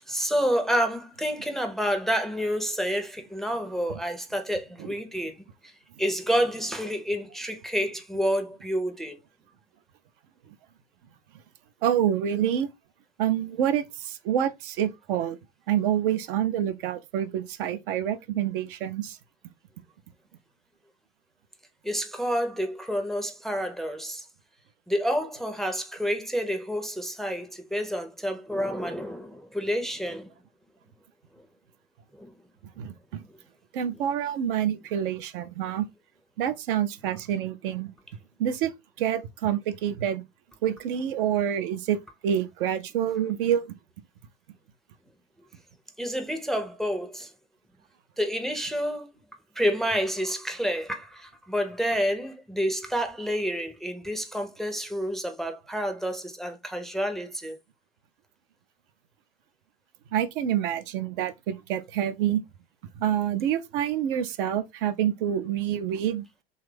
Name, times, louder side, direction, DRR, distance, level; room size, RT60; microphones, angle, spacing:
voice 1, 0.1-5.7 6.0-9.2 21.8-24.2 24.9-30.3 32.2-32.3 46.0-47.3 48.2-49.1 49.6-57.6, equal, ahead, 0.5 m, -29 dB
voice 2, 11.8-12.7 13.2-15.4 15.7-19.2 32.8-33.2 33.7-35.8 36.4-37.9 38.4-38.7 39.0-40.2 40.6-42.0 42.2-43.7 60.1-62.4 63.0-66.2, right 10 dB, 60° right, 0.5 m, -27 dB
3.2 x 2.4 x 3.2 m
hypercardioid pair, 80°, 30 cm